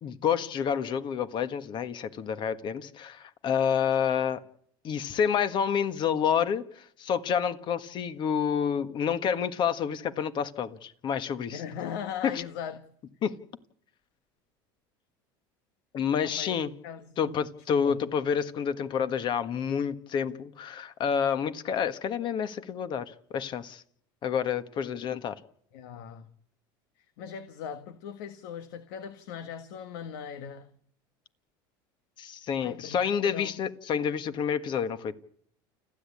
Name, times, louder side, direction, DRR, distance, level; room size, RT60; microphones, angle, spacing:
voice 1, 0.0-4.4 4.8-11.6 12.2-12.4 13.2-13.3 15.9-16.7 17.2-23.8 24.2-25.4 32.2-35.1, left 7 dB, 45° left, 1.6 m, -29 dB
voice 2, 11.5-12.8 16.2-17.4 17.8-17.9 25.7-26.3 27.2-30.7 32.6-33.6, left 8 dB, 75° left, 1.6 m, -39 dB
29.5 x 10.5 x 8.5 m
supercardioid pair, 110°, 11 cm